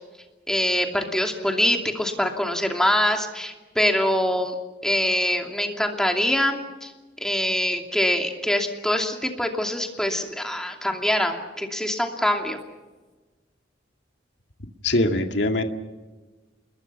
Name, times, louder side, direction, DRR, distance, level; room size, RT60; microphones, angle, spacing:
voice 1, 0.5-4.6 4.8-6.9 7.2-12.6, left 1 dB, 5° left, 2 dB, 2.7 m, -24 dB
voice 2, 14.8-15.6, left 2 dB, 70° left, 5 dB, 2.1 m, -22 dB
29.0 x 21.5 x 5.9 m, 1.2 s
head